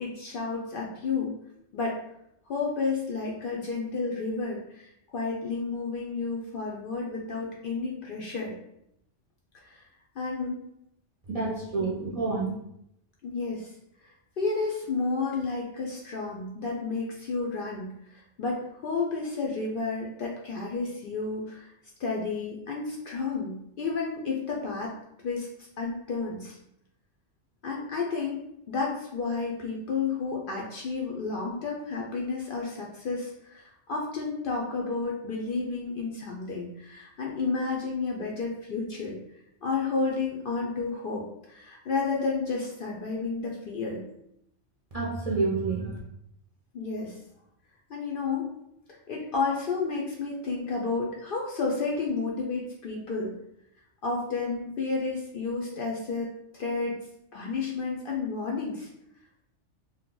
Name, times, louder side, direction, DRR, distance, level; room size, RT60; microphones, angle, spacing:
voice 1, 0.0-1.4 1.7-2.0 2.5-8.5 9.5-9.8 10.2-10.6 11.8-11.9 13.2-13.8 14.4-21.7 22.0-24.9 25.2-26.6 27.6-39.2 39.6-44.0 46.7-47.2 47.9-48.5 48.9-53.3 54.0-56.3 56.6-57.0 57.3-58.9, left 4 dB, 60° left, -2 dB, 0.6 m, -31 dB
voice 2, 11.3-12.5 44.9-46.0, right 3 dB, 50° right, -6 dB, 0.4 m, -28 dB
2.7 x 2.2 x 3.6 m, 0.79 s
omnidirectional pair, 1.3 m